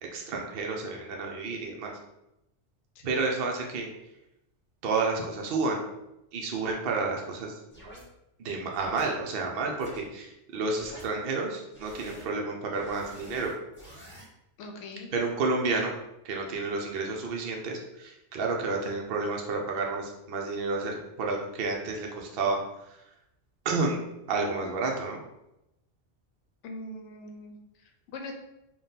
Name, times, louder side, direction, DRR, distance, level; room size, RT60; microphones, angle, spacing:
voice 1, 0.0-1.9 3.0-3.9 4.8-5.8 6.3-7.6 8.4-13.5 15.1-15.9 16.2-22.6 22.9-23.0 23.6-24.0 24.3-25.2, right 3 dB, 60° right, 1 dB, 0.7 m, -30 dB
sound 1, 7.7-8.0 8.7-9.0 9.8-10.0 10.7-11.1 11.7-12.2 12.7-14.3, equal, 10° left, 1.0 m, -48 dB
voice 2, 14.6-15.1 26.6-28.3, left 2 dB, 75° left, 4 dB, 0.9 m, -42 dB
3.7 x 2.3 x 3.9 m, 0.88 s
omnidirectional pair, 1.2 m